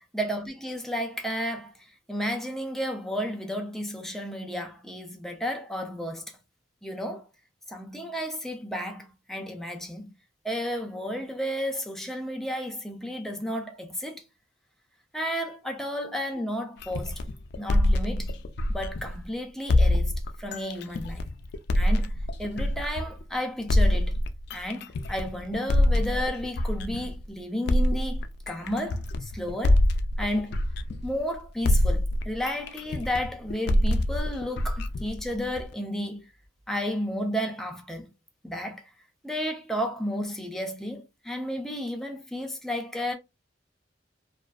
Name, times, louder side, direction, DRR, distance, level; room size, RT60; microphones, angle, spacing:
voice 1, 0.1-6.3 6.8-7.3 7.7-10.1 10.4-14.2 15.1-17.1 17.6-18.4 18.7-21.3 21.7-22.1 22.4-24.1 24.5-29.8 30.2-30.6 31.0-36.3 36.7-38.1 38.4-38.9 39.2-43.1, equal, ahead, 0.5 m, -32 dB
sound 1, 16.8-19.2 19.7-23.2 23.7-27.2 27.7-31.3 31.6-35.7, left 1 dB, 65° left, 0.3 m, -25 dB
2.5 x 2.3 x 2.3 m
head